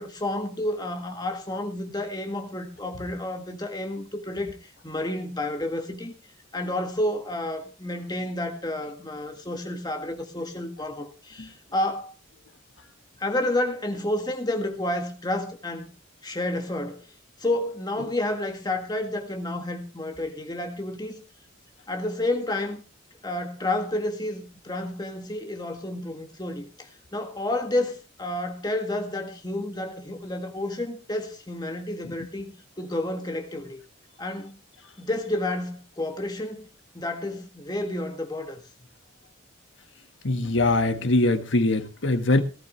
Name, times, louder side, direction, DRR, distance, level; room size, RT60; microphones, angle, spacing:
voice 1, 0.0-6.1 6.5-12.1 13.2-15.9 16.2-17.1 17.4-21.2 21.9-22.8 23.2-33.8 34.2-34.6 35.0-36.6 36.9-38.6, left 1 dB, 20° left, 1.7 m, -30 dB
voice 2, 40.2-42.4, left 2 dB, 70° left, 1.5 m, -22 dB
18.5 x 12.5 x 3.2 m
head